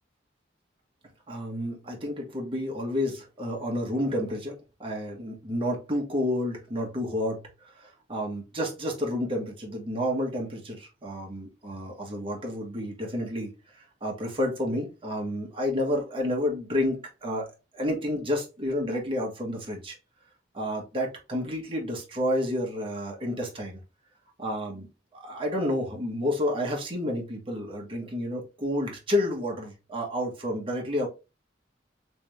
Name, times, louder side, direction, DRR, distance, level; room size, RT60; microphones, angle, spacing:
voice 1, 1.3-7.4 7.7-20.0 20.5-23.8 24.4-24.9 25.1-31.1, left 1 dB, 30° right, 0 dB, 1.3 m, -30 dB
3.4 x 3.4 x 3.1 m, 0.28 s
head